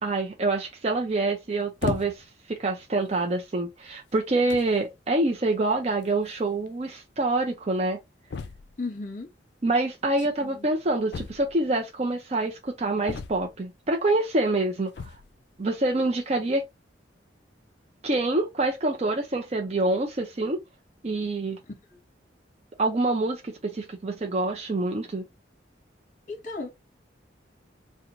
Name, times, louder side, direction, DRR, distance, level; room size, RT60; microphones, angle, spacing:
voice 1, 0.0-8.0 9.6-15.1 15.6-16.6 18.0-20.6 21.0-21.6 22.8-25.3, right 2 dB, 35° right, 0.5 m, -26 dB
sound 1, 1.8-2.4 3.2-3.3 4.1-4.2 4.5-4.8 6.0-6.1 6.3-6.4 6.7-6.8 8.3-8.8 11.1-11.8 13.1-13.7 14.9-15.4, left 5 dB, 65° left, 0.4 m, -35 dB
voice 2, 8.8-9.3 10.4-10.7 21.9-22.0 26.3-26.7, left 3 dB, 45° left, 1.1 m, -35 dB
3.0 x 2.2 x 3.7 m
head